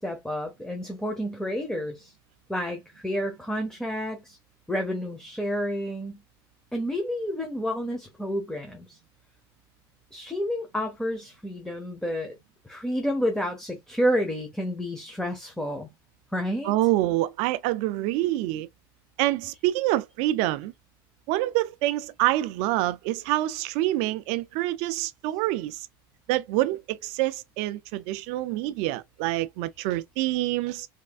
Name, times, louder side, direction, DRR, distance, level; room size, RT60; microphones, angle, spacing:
voice 1, 0.0-2.1 2.5-4.4 4.7-6.2 6.7-9.0 10.1-12.3 12.6-15.9 16.3-16.9, equal, 5° left, 1.0 m, -30 dB
voice 2, 16.6-18.7 19.2-20.7 21.3-25.9 26.3-30.9, right 16 dB, 65° right, 0.4 m, -26 dB
3.5 x 3.2 x 2.3 m
supercardioid pair, 100°, 12 cm